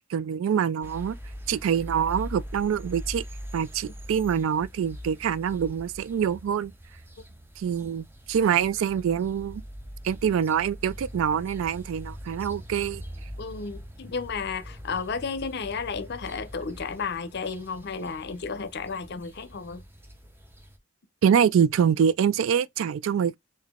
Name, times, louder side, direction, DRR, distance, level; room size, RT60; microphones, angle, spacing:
voice 1, 0.1-1.2 1.5-3.2 3.5-6.7 7.6-9.6 10.0-13.0 21.2-23.4, right 8 dB, 80° right, 0.3 m, -25 dB
sound 1, 0.8-20.8, equal, 10° right, 0.6 m, -42 dB
voice 2, 13.4-19.8, left 5 dB, 55° left, 0.6 m, -33 dB
3.8 x 2.7 x 3.5 m
head